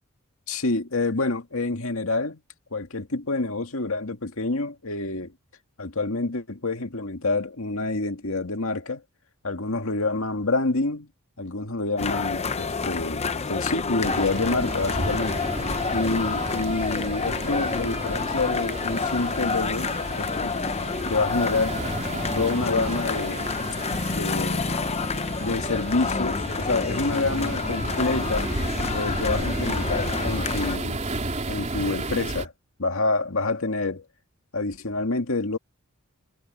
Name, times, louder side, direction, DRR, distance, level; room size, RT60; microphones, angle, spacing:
voice 1, 0.5-2.4 2.7-5.3 5.8-9.0 9.4-11.1 11.4-15.5 15.9-19.9 20.2-20.6 21.1-21.8 22.3-23.5 24.1-24.8 25.4-28.5 28.9-31.0 31.5-32.5 32.8-34.0 34.5-35.6, left 3 dB, 70° left, 2.2 m, -27 dB
sound 1, 12.0-30.8, left 4 dB, 30° left, 0.7 m, -29 dB
sound 2, 14.0-32.5, right 2 dB, 35° right, 3.7 m, -32 dB
head